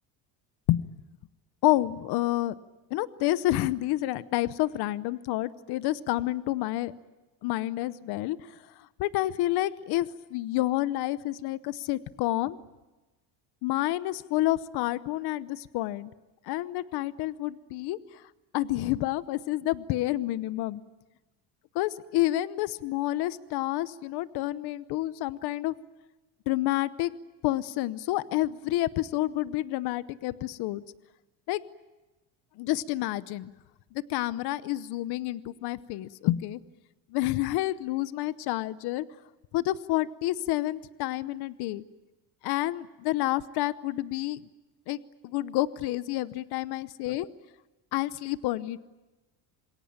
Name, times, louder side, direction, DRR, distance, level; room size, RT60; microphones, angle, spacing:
voice 1, 1.6-2.6 2.9-6.9 7.4-8.4 9.0-12.6 13.6-16.1 16.5-18.2 18.5-20.8 21.7-25.7 26.5-27.1 27.4-30.8 31.5-31.6 32.6-33.5 33.9-36.6 37.1-39.0 39.5-41.8 42.4-44.4 44.9-45.0 45.2-47.3 47.9-48.8, left 16 dB, 60° left, 16 dB, 0.9 m, -29 dB
27.0 x 21.5 x 8.9 m, 1.1 s
cardioid pair, 150°, 44 cm